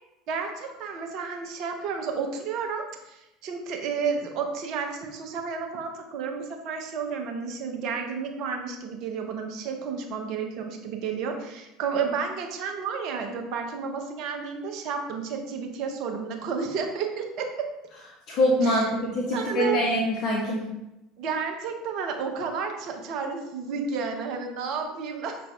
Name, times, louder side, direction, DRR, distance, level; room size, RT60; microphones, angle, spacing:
voice 1, 0.3-17.7 18.6-18.9 19.3-19.8 21.2-25.4, right 5 dB, 50° right, 3 dB, 0.7 m, -31 dB
voice 2, 18.3-20.6, left 1 dB, 50° left, -2 dB, 0.7 m, -24 dB
5.8 x 2.6 x 3.2 m, 0.93 s
figure-of-eight pair, 70°, 0 cm